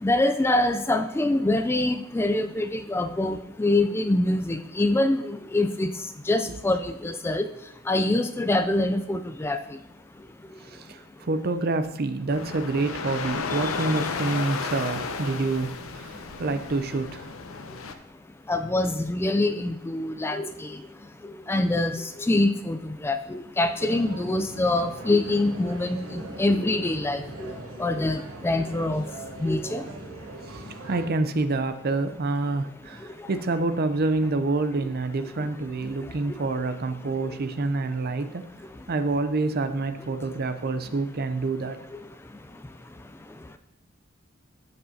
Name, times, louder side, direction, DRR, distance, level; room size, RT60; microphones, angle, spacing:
voice 1, 0.0-5.9 6.3-7.5 7.9-9.6 18.5-20.7 21.5-27.2 27.8-29.1 29.4-29.8, left 2 dB, 10° left, 9 dB, 0.3 m, -25 dB
voice 2, 10.6-17.3 30.4-38.5 38.9-41.8, right 3 dB, 50° right, 10 dB, 0.6 m, -27 dB
sound 1, 12.3-17.9, left 4 dB, 90° left, 0.7 m, -33 dB
sound 2, 23.8-31.1, right 2 dB, 85° right, 1.0 m, -40 dB
14.5 x 5.3 x 2.8 m, 0.84 s
head